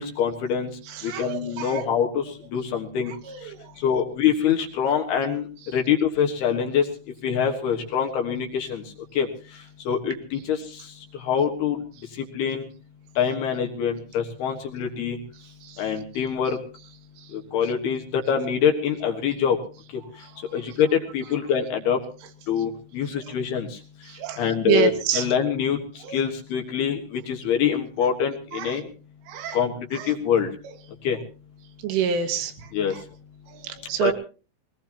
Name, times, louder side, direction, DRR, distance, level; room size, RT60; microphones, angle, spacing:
voice 1, 0.0-6.9 7.2-12.7 13.2-15.2 15.8-16.6 17.3-19.6 19.9-22.0 22.5-28.9 29.5-30.5 31.0-31.2 32.7-33.1 34.0-34.1, left 7 dB, 65° left, 3 dB, 3.0 m, -25 dB
voice 2, 0.9-1.8 3.3-3.7 15.6-15.8 17.2-17.3 24.1-25.3 26.0-26.2 28.5-28.8 29.3-29.6 29.9-30.1 31.8-33.0 33.5-34.1, right 9 dB, 80° right, 7 dB, 3.7 m, -28 dB
22.0 x 19.5 x 2.9 m, 0.35 s
omnidirectional pair, 5.7 m